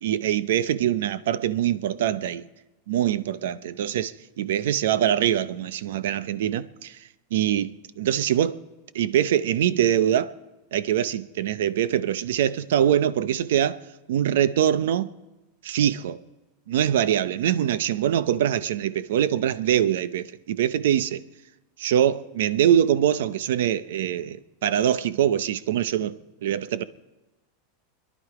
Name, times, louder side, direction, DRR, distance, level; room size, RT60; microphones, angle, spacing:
voice 1, 0.0-2.4 2.9-7.0 7.3-8.6 8.9-10.3 10.7-13.8 14.1-15.1 15.6-16.2 16.7-21.2 21.8-26.8, right 10 dB, 75° right, 0.7 m, -23 dB
25.0 x 11.0 x 4.9 m
supercardioid pair, 175°, 0 cm